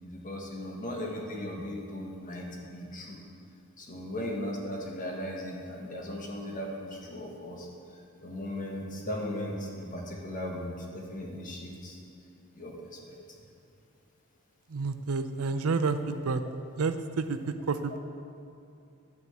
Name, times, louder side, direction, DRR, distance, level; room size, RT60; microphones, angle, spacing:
voice 1, 0.0-3.2 3.8-7.7 7.9-12.0 12.5-13.4, left 1 dB, 40° left, -1 dB, 1.7 m, -37 dB
voice 2, 14.7-16.4 16.8-18.0, right 4 dB, 80° right, 9 dB, 0.6 m, -30 dB
11.0 x 5.9 x 8.1 m, 2.6 s
head